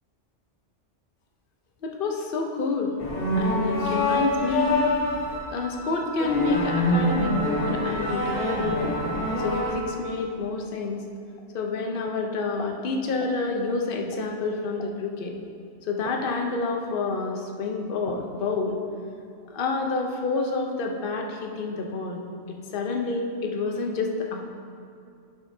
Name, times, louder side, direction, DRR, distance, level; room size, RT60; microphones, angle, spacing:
voice 1, 1.8-3.0 3.4-4.8 5.5-9.0 9.4-11.0 11.5-15.4 15.9-18.8 19.5-24.4, left 3 dB, 55° left, 1 dB, 0.9 m, -28 dB
sound 1, 3.0-5.4 6.2-9.7, left 1 dB, 75° left, 1.5 m, -25 dB
Wind instrument woodwind instrument, 3.8-10.0, right 4 dB, 40° right, 0.8 m, -38 dB
12.0 x 5.6 x 2.7 m, 2.4 s
omnidirectional pair, 1.2 m